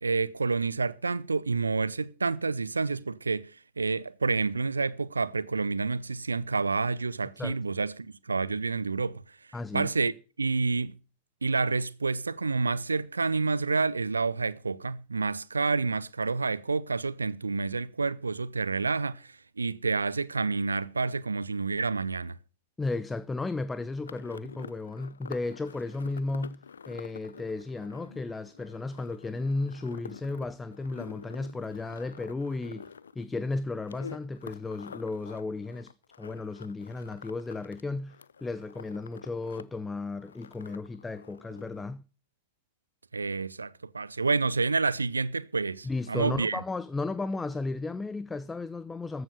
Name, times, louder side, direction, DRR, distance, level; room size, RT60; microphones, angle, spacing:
voice 1, 0.0-3.5 3.8-9.2 9.7-10.1 10.4-11.0 11.4-22.4 43.1-46.6, right 4 dB, 80° right, 0.5 m, -29 dB
voice 2, 9.5-9.9 22.8-32.9 33.1-35.9 36.2-42.0 45.8-49.2, left 3 dB, 10° left, 0.6 m, -34 dB
sound 1, 24.0-37.8 38.1-39.6 39.9-41.8, left 6 dB, 70° left, 0.5 m, -48 dB
14.0 x 7.9 x 6.6 m
figure-of-eight pair, 90°, 0 cm